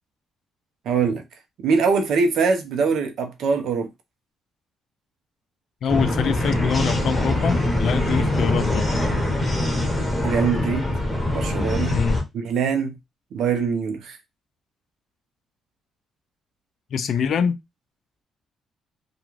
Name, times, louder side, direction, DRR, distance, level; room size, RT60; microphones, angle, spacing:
voice 1, 0.9-1.2 1.6-3.9 10.2-10.9 11.3-12.0 12.3-13.0 13.3-14.2, right 5 dB, 75° right, 0.7 m, -22 dB
voice 2, 5.8-8.9 11.9-12.2 16.9-17.6, left 7 dB, 65° left, 0.4 m, -24 dB
sound 1, 5.9-12.2, left 1 dB, 10° left, 1.1 m, -23 dB
2.4 x 2.3 x 3.0 m
cardioid pair, 90°, 0 cm